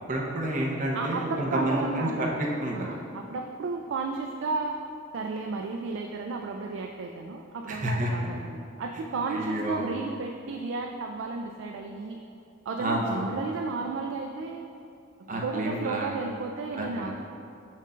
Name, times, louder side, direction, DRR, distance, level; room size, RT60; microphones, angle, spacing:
voice 1, 0.0-2.9 7.7-8.1 9.3-9.8 12.8-13.3 15.3-16.2 16.7-17.0, right 1 dB, 40° right, -2 dB, 0.8 m, -29 dB
voice 2, 0.9-2.3 2.7-4.8 5.1-12.2 12.7-14.7 15.2-17.1, right 4 dB, 70° right, 3 dB, 0.3 m, -33 dB
7.4 x 2.5 x 5.5 m, 2.7 s
head